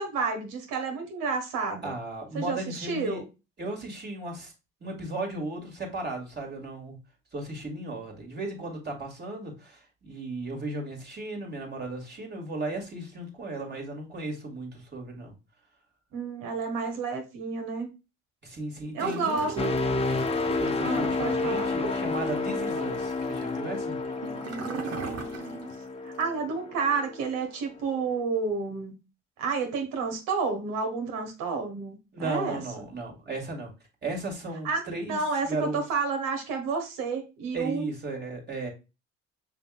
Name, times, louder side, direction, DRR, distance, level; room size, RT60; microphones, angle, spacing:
voice 1, 0.0-1.9 2.3-3.2 16.1-17.9 18.9-19.5 20.8-21.7 24.4-25.7 26.0-28.9 29.4-32.6 34.6-37.8, right 4 dB, 70° right, 4 dB, 1.5 m, -30 dB
voice 2, 1.8-3.2 3.6-4.5 4.8-7.0 7.3-15.3 18.4-19.7 20.5-24.0 32.1-33.7 34.0-35.8 37.5-38.7, right 2 dB, 30° right, 1 dB, 2.1 m, -35 dB
Gurgling / Toilet flush, 19.0-25.8 26.1-26.2, right 6 dB, 45° right, 1.1 m, -40 dB
sound 1, 19.6-27.4 27.8-28.1, left 3 dB, 20° left, 0.5 m, -30 dB
5.7 x 3.4 x 2.4 m, 0.28 s
hypercardioid pair, 65°, 34 cm